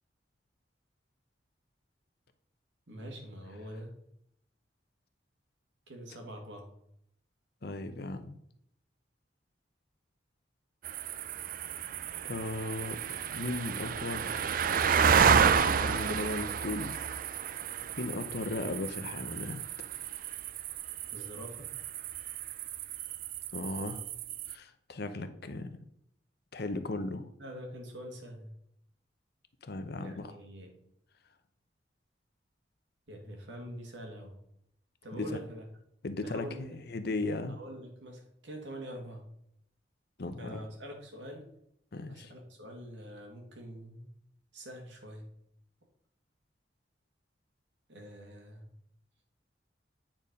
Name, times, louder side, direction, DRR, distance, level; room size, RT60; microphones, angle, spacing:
voice 1, 2.9-3.9 5.9-6.7 21.1-21.7 26.6-26.7 27.4-28.5 30.0-30.7 33.1-34.3 35.0-35.7 36.2-36.8 37.5-39.2 40.4-41.5 42.1-44.1 44.5-45.3 47.9-48.6, equal, 80° right, 2 dB, 2.2 m, -44 dB
voice 2, 7.6-8.4 12.2-14.3 15.1-17.0 18.0-19.6 23.5-24.0 24.5-25.7 26.5-27.3 29.6-30.3 35.1-35.4 36.0-37.5 40.2-40.6 41.9-42.3, left 2 dB, 60° left, 9 dB, 0.8 m, -36 dB
sound 1, 10.8-24.5, right 7 dB, 50° right, 0.4 m, -31 dB
9.0 x 4.5 x 5.2 m, 0.74 s
head